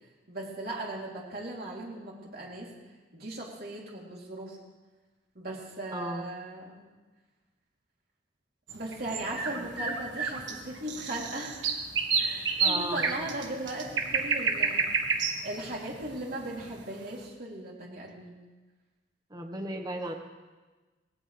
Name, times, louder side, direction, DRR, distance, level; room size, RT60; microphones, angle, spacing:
voice 1, 0.3-2.7 3.1-4.6 5.4-6.8 8.7-11.6 12.2-14.9 15.4-18.3, right 1 dB, 55° right, -3 dB, 3.6 m, -38 dB
voice 2, 5.9-6.3 9.4-9.7 12.6-13.2 19.3-20.1, right 1 dB, 20° right, 4 dB, 1.5 m, -36 dB
sound 1, 8.7-16.9, right 5 dB, 75° right, 1.6 m, -30 dB
20.5 x 17.0 x 3.5 m, 1.3 s
head